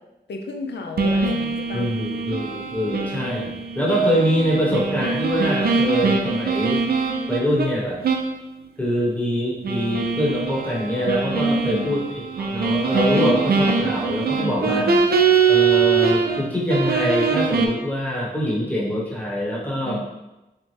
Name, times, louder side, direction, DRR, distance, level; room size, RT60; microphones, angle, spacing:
voice 1, 0.3-1.9 11.3-12.0 14.3-15.0 19.8-20.0, left 2 dB, 70° left, 3 dB, 0.4 m, -31 dB
sound 1, 1.0-7.7 8.0-8.3 8.7-8.8 9.6-16.4 16.7-17.7, right 4 dB, 60° right, 0.4 m, -22 dB
voice 2, 1.7-6.8 7.3-8.0 8.8-14.9 15.5-20.0, equal, 10° left, -5 dB, 1.0 m, -24 dB
2.8 x 2.0 x 3.1 m, 0.98 s
cardioid pair, 45°, 18 cm